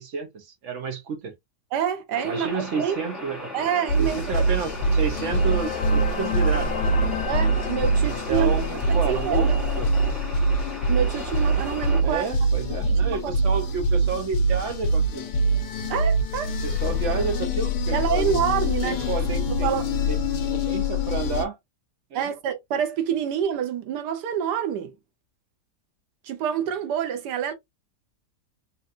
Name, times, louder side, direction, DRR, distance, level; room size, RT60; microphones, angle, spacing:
voice 1, 0.0-1.3 2.2-3.6 4.0-6.8 8.0-10.3 12.0-15.3 16.6-21.6 22.1-22.3, right 5 dB, 55° right, 0.9 m, -31 dB
voice 2, 1.7-3.0 3.5-4.4 7.3-8.6 9.1-9.4 10.9-12.2 12.9-13.3 15.9-16.6 17.9-19.1 19.5-19.8 22.1-24.9 26.2-27.5, right 9 dB, 90° right, 1.4 m, -27 dB
sound 1, 2.1-12.0, left 1 dB, ahead, 0.9 m, -36 dB
sound 2, 3.9-21.4, right 1 dB, 80° left, 1.3 m, -24 dB
sound 3, 4.5-9.9, left 6 dB, 65° left, 0.7 m, -33 dB
4.0 x 2.4 x 2.5 m
omnidirectional pair, 1.7 m